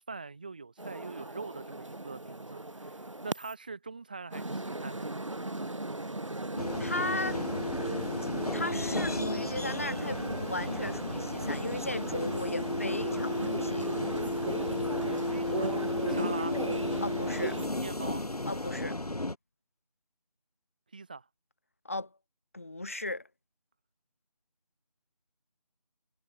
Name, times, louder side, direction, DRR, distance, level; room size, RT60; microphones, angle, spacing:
voice 1, 0.0-3.0 3.2-5.2 15.0-16.6 17.8-18.2 20.9-21.2, right 4 dB, 15° right, 3.8 m, -43 dB
sound 1, 0.8-3.5 4.3-17.7, right 2 dB, 50° right, 7.5 m, -37 dB
sound 2, 6.6-19.4, left 2 dB, 65° left, 5.2 m, -34 dB
voice 2, 6.8-7.4 8.5-14.0 17.0-17.6 18.5-19.0 21.8-22.1 22.5-23.3, left 2 dB, 20° left, 2.5 m, -36 dB
figure-of-eight pair, 180°, 21 cm